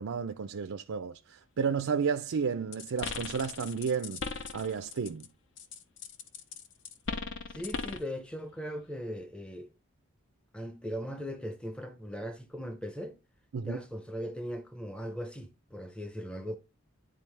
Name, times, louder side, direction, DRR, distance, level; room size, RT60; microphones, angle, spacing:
voice 1, 0.0-5.3 13.5-13.8, right 6 dB, 75° right, 0.4 m, -32 dB
sound 1, 2.7-5.3 5.6-8.1, left 5 dB, 60° left, 0.7 m, -38 dB
voice 2, 7.5-9.7 10.5-13.2 13.7-16.6, equal, 5° left, 0.6 m, -39 dB
10.0 x 3.8 x 3.2 m
head